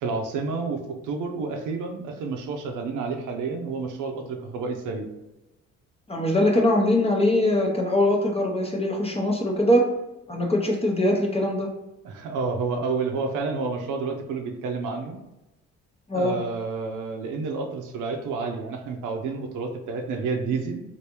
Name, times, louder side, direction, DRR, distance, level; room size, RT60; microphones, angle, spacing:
voice 1, 0.0-5.1 12.0-15.2 16.1-20.8, right 4 dB, 85° right, 4 dB, 0.5 m, -30 dB
voice 2, 6.1-9.9 10.3-11.7 16.1-16.4, left 1 dB, 20° left, 0 dB, 0.6 m, -22 dB
3.3 x 2.6 x 2.9 m, 0.96 s
cardioid pair, 90°, 30 cm